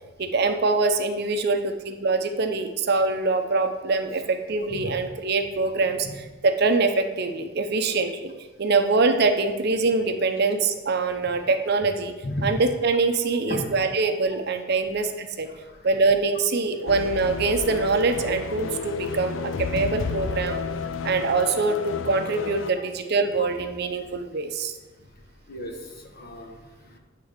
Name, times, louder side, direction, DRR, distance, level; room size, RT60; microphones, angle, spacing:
voice 1, 0.2-8.3 8.6-12.1 12.4-15.5 15.8-20.6 21.0-24.7, right 3 dB, 50° right, 6 dB, 0.7 m, -24 dB
sound 1, 16.9-22.7, left 5 dB, 70° left, 0.5 m, -31 dB
voice 2, 25.5-27.0, left 1 dB, 50° left, 2 dB, 1.2 m, -34 dB
8.7 x 3.7 x 6.6 m, 1.3 s
head